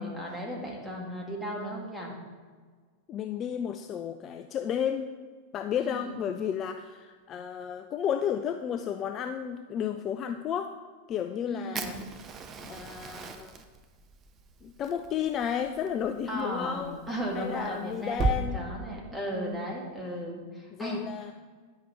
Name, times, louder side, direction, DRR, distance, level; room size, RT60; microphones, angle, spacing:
voice 1, 0.0-2.1 5.8-6.1 11.5-12.0 16.3-21.0, right 1 dB, ahead, -3 dB, 2.0 m, -36 dB
voice 2, 3.1-5.2 5.5-10.7 11.1-12.0 12.6-13.6 14.6-17.0 17.3-18.7 19.2-19.7 20.7-21.3, left 8 dB, 30° left, 6 dB, 0.4 m, -32 dB
Fire, 11.7-18.4, right 4 dB, 30° right, 0.6 m, -37 dB
9.9 x 5.6 x 4.3 m, 1.5 s
figure-of-eight pair, 90°, 0 cm